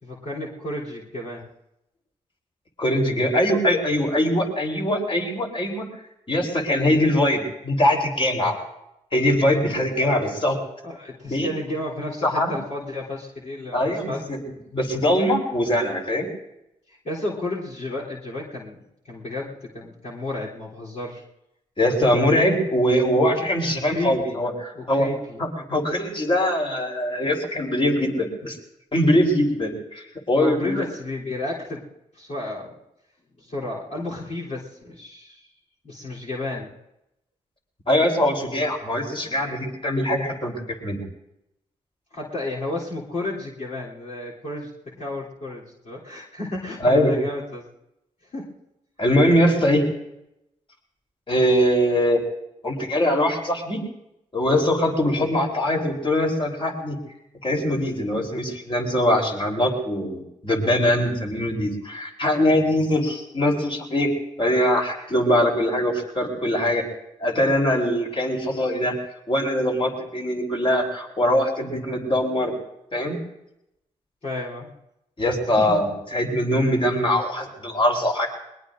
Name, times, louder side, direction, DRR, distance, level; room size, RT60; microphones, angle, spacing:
voice 1, 0.0-1.5 10.8-14.3 16.9-21.2 23.8-24.4 24.7-25.4 30.3-31.9 32.1-32.8 33.4-35.5 35.8-36.7 42.1-47.6 48.3-48.5 74.2-74.7 75.6-75.8, left 2 dB, 55° left, -6 dB, 3.4 m, -32 dB
voice 2, 2.8-5.8 6.3-8.5 9.1-10.6 11.3-11.5 12.2-12.5 13.7-14.4 14.7-16.3 21.8-25.1 25.4-28.6 28.9-30.8 37.9-40.5 40.8-41.0 46.8-47.1 49.0-49.8 51.3-52.2 52.6-53.8 54.3-57.0 57.4-64.1 64.4-66.8 67.2-69.0 69.3-72.5 72.9-73.2 75.2-78.3, left 1 dB, 35° left, 0 dB, 3.9 m, -22 dB
21.0 x 21.0 x 2.6 m, 0.86 s
supercardioid pair, 45°, 15 cm